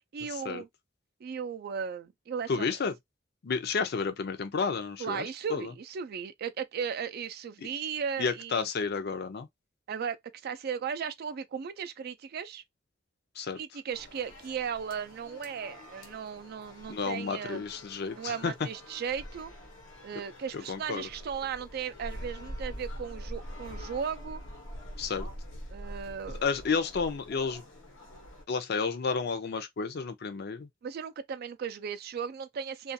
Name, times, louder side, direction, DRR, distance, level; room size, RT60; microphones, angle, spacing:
voice 1, 0.1-0.7 1.2-2.7 5.0-8.7 9.9-10.2 10.4-12.6 13.5-17.6 18.2-19.5 20.0-24.4 25.7-26.4 30.8-32.9, right 7 dB, 55° right, 0.3 m, -36 dB
voice 2, 2.5-2.9 3.4-5.7 8.2-9.5 13.4-13.6 16.9-18.5 20.5-21.1 25.0-25.3 26.4-27.6 28.5-30.7, left 5 dB, 55° left, 0.5 m, -31 dB
sound 1, 13.9-28.4, equal, 90° left, 1.0 m, -45 dB
2.4 x 2.3 x 2.5 m
head